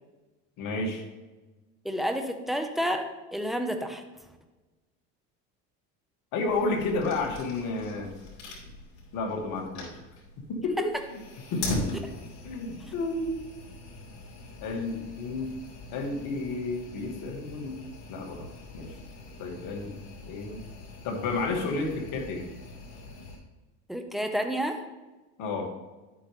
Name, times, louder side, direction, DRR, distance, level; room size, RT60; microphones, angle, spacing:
voice 1, 0.6-1.0 6.3-8.1 9.1-10.0 10.5-11.2 11.5-12.0 12.4-13.4 14.6-15.5 15.9-17.8 18.1-18.5 18.7-19.0 19.4-20.0 20.3-20.6 21.0-22.5 25.4-25.7, left 3 dB, 60° left, 2 dB, 2.3 m, -31 dB
voice 2, 1.8-4.0 12.9-13.0 23.9-24.8, equal, ahead, 5 dB, 1.1 m, -30 dB
sound 1, 6.4-23.4, left 3 dB, 80° left, 3.7 m, -42 dB
11.0 x 8.6 x 3.4 m, 1.2 s
supercardioid pair, 105°, 36 cm